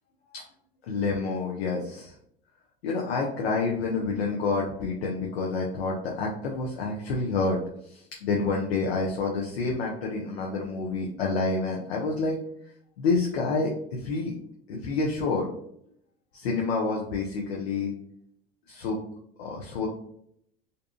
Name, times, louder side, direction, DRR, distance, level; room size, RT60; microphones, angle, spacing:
voice 1, 0.8-2.1 2.8-12.4 13.0-14.3 14.7-15.5 16.3-17.9 18.7-19.0 19.4-19.9, left 3 dB, 80° left, -1 dB, 0.5 m, -28 dB
2.6 x 2.3 x 2.3 m, 0.72 s
hypercardioid pair, 75°, 31 cm